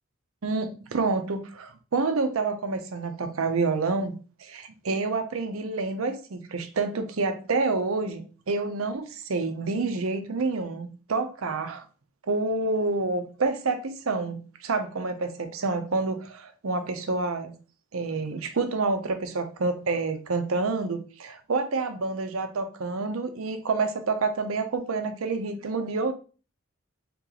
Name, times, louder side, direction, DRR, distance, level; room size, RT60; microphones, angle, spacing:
voice 1, 0.4-4.1 4.4-11.9 12.3-17.5 17.9-26.1, right 3 dB, 85° right, 0.6 m, -28 dB
3.7 x 3.0 x 3.8 m
head